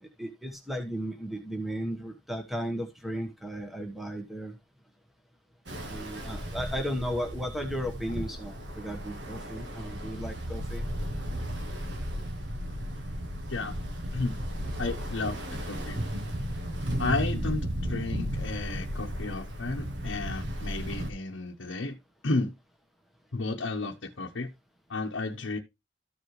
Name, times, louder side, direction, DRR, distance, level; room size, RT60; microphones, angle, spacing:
voice 1, 0.0-4.5 5.9-10.9, equal, ahead, 1.2 m, -35 dB
Ocean, 5.7-21.1, equal, 65° right, 1.5 m, -34 dB
voice 2, 14.8-15.4 15.6-16.0 17.0-22.0 22.2-22.5 23.3-24.5 24.9-25.6, left 3 dB, 80° left, 1.0 m, -32 dB
14.0 x 4.9 x 3.1 m
head